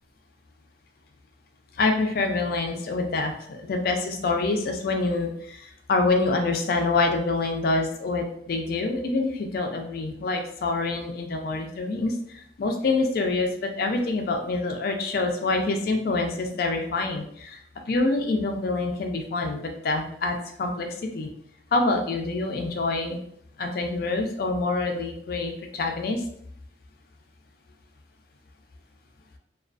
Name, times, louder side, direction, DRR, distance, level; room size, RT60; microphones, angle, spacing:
voice 1, 1.8-20.9 21.1-21.3 21.7-23.2 23.6-26.2, left 3 dB, 55° left, 3 dB, 0.4 m, -26 dB
2.3 x 2.2 x 2.4 m, 0.68 s
head